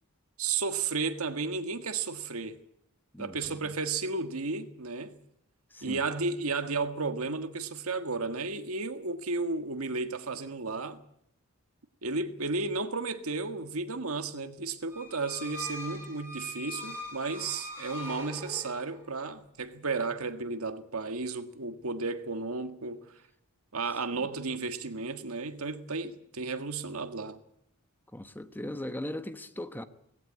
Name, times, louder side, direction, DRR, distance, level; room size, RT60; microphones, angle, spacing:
voice 1, 0.4-2.6 3.2-5.1 5.8-11.0 12.0-23.2 23.7-27.4, right 4 dB, 75° right, 1.7 m, -33 dB
voice 2, 3.1-3.7 5.7-6.0 28.1-29.9, left 1 dB, 10° left, 1.0 m, -39 dB
sound 1, 14.9-19.1, equal, 10° right, 4.5 m, -42 dB
19.0 x 16.5 x 9.6 m
head